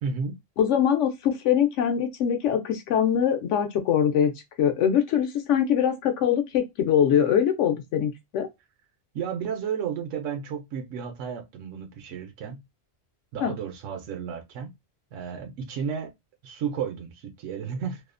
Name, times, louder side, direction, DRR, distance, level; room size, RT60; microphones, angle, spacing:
voice 1, 0.0-0.4 9.1-12.6 13.3-14.7 15.1-16.1 16.4-18.0, right 7 dB, 80° right, 0.9 m, -32 dB
voice 2, 0.6-4.3 4.6-8.5 13.4-13.5, left 9 dB, 75° left, 0.9 m, -23 dB
2.7 x 2.0 x 2.4 m
omnidirectional pair, 1.3 m